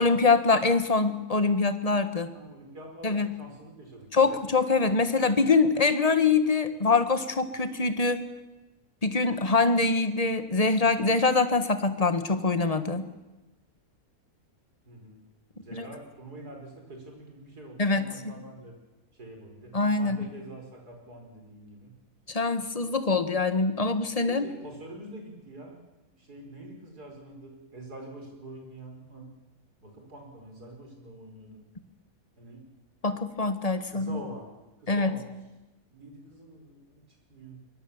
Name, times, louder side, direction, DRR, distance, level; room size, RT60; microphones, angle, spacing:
voice 1, 0.0-2.3 3.0-3.3 4.1-8.3 9.0-13.1 15.7-15.8 17.8-18.4 19.7-20.3 22.3-24.4 33.0-34.2 34.9-35.2, left 4 dB, 25° left, 10 dB, 1.4 m, -24 dB
voice 2, 2.3-4.4 14.9-15.2 15.5-18.7 19.2-22.0 24.2-25.8 26.2-29.3 29.8-31.6 32.4-32.6 33.9-34.5 34.8-35.3 35.9-37.0 37.3-37.6, right 1 dB, 85° right, 2 dB, 5.5 m, -45 dB
23.5 x 21.0 x 7.2 m, 1.1 s
omnidirectional pair, 1.6 m